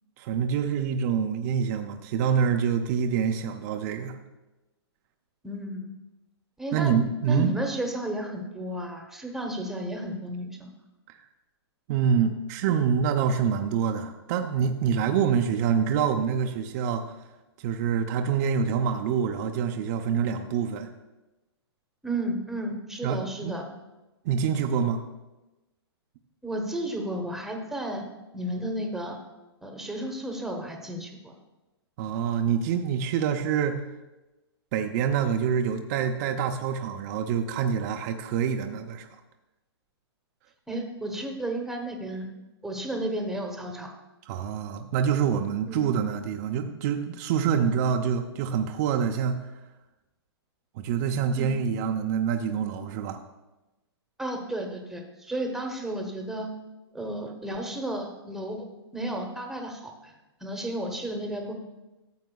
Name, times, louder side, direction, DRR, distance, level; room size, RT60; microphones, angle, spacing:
voice 1, 0.2-4.2 6.7-7.5 11.9-17.1 17.6-20.9 23.0-23.5 24.3-25.0 32.0-33.8 34.7-39.1 44.3-49.4 50.8-53.2, right 7 dB, 40° right, 4 dB, 0.6 m, -26 dB
voice 2, 5.4-5.9 6.6-10.7 22.0-23.7 26.4-28.1 28.3-29.2 29.6-31.3 40.7-42.3 42.6-43.9 45.7-45.9 51.4-51.5 54.2-56.5 56.9-58.7 58.9-60.1 60.4-61.5, right 1 dB, 5° right, 3 dB, 1.0 m, -33 dB
13.5 x 7.3 x 2.3 m, 1.0 s
hypercardioid pair, 135°, 14 cm